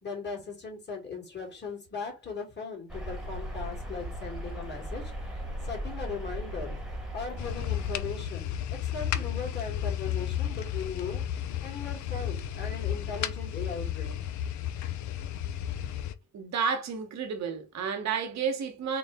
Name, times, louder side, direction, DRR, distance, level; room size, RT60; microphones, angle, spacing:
voice 1, 0.0-6.8 7.1-11.4 11.6-14.2, left 5 dB, 35° left, 2.3 m, -38 dB
sound 1, 2.9-8.0, right 1 dB, ahead, 1.4 m, -37 dB
sound 2, 7.4-16.1, left 10 dB, 70° left, 0.5 m, -33 dB
voice 2, 16.3-19.0, right 6 dB, 65° right, 1.1 m, -31 dB
3.7 x 2.3 x 3.5 m
cardioid pair, 90°, 30 cm